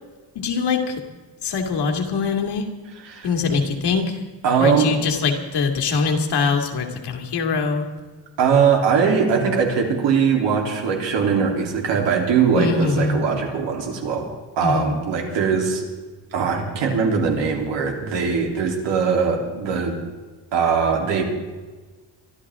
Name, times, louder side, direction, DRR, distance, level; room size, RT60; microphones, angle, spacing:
voice 1, 0.3-1.0 1.4-2.7 3.2-4.2 4.6-7.9 12.6-13.2 14.6-14.9, left 4 dB, 65° left, 3 dB, 2.5 m, -23 dB
voice 2, 4.4-4.9 8.4-15.9 16.3-20.0 20.5-21.2, right 6 dB, 80° right, 1 dB, 3.6 m, -21 dB
24.5 x 13.0 x 3.7 m, 1.3 s
cardioid pair, 165°, 43 cm